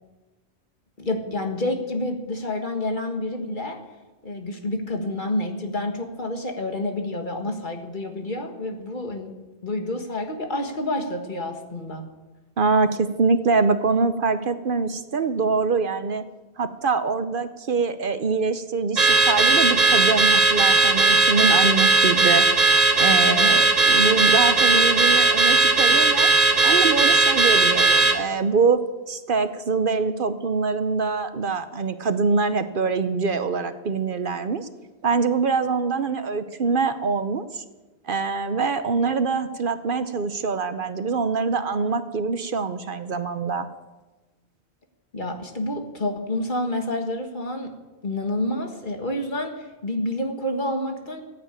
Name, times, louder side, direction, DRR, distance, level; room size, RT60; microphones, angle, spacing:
voice 1, 1.0-3.8 4.2-9.3 9.6-12.0 23.0-23.5 45.1-47.7 48.0-51.2, left 1 dB, 45° left, 4 dB, 1.8 m, -28 dB
voice 2, 12.6-16.2 16.6-22.4 23.0-26.3 26.6-28.8 29.1-34.7 35.0-37.6 38.1-43.7, right 4 dB, 55° right, 11 dB, 0.9 m, -24 dB
Car / Alarm, 19.0-28.2, right 3 dB, 40° right, 1.1 m, -17 dB
15.0 x 9.3 x 8.9 m, 1.2 s
omnidirectional pair, 1.1 m